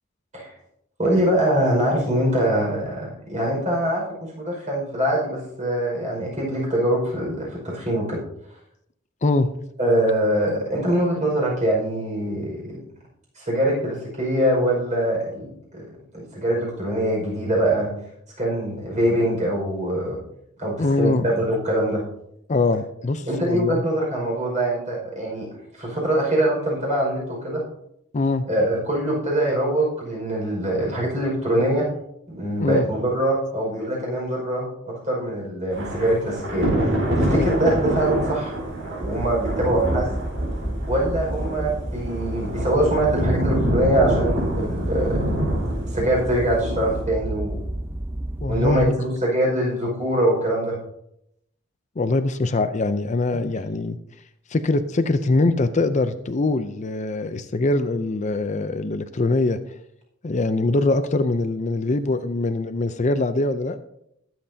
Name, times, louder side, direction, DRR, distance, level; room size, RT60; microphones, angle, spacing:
voice 1, 1.0-4.0 4.4-8.2 9.8-12.8 13.4-15.9 16.1-17.9 18.4-20.2 20.6-22.0 23.3-25.5 25.8-27.6 28.5-31.9 32.3-38.5 39.0-40.1 40.9-45.2 45.9-47.6 48.5-50.8 53.3-53.4, right 1 dB, 35° right, -2 dB, 5.2 m, -23 dB
voice 2, 20.8-21.3 22.5-23.8 28.1-28.4 32.6-32.8 37.3-37.5 48.4-49.0 52.0-54.0 54.5-59.6 60.2-63.8, left 2 dB, 35° left, 10 dB, 0.5 m, -23 dB
Thunder / Rain, 35.7-47.0, right 1 dB, 65° right, 4.4 m, -26 dB
sound 1, 39.0-48.9, right 1 dB, 10° right, 0.6 m, -31 dB
21.0 x 7.8 x 2.8 m, 0.76 s
head